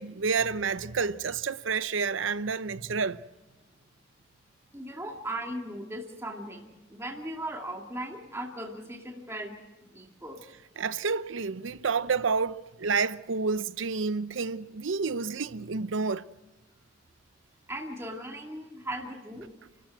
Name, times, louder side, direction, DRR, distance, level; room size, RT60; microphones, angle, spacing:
voice 1, 0.0-3.2 10.8-16.3, right 5 dB, 75° right, 0.7 m, -29 dB
voice 2, 4.7-9.5 9.8-10.4 17.7-19.5, right 1 dB, 15° right, 2.2 m, -38 dB
30.0 x 13.5 x 7.8 m
head